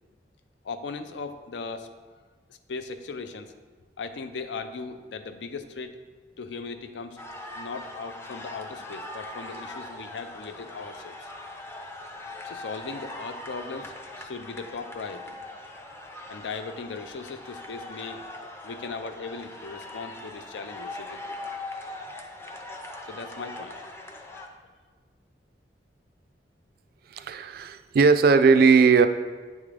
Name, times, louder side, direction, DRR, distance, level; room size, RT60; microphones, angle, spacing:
voice 1, 0.6-1.9 2.7-3.5 4.0-6.0 6.4-7.2 7.5-11.3 12.4-15.4 16.3-18.2 18.6-21.5 23.1-23.8, left 4 dB, 80° left, 9 dB, 0.5 m, -38 dB
sound 1, 7.2-24.5, left 2 dB, 15° left, 0.5 m, -41 dB
voice 2, 27.1-29.1, right 5 dB, 55° right, 10 dB, 0.3 m, -18 dB
9.3 x 3.6 x 3.3 m, 1.4 s
head